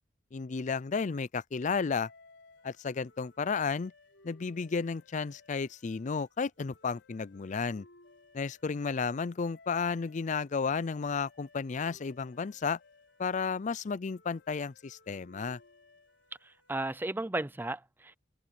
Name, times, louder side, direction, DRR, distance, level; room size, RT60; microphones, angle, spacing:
voice 1, 0.3-2.1 2.6-3.9 4.2-7.9 8.3-12.8 13.2-15.6, left 5 dB, 40° left, 0.4 m, -33 dB
sound 1, 2.0-17.1, left 3 dB, 85° left, 3.9 m, -61 dB
voice 2, 16.4-18.2, right 2 dB, 10° right, 0.6 m, -35 dB
head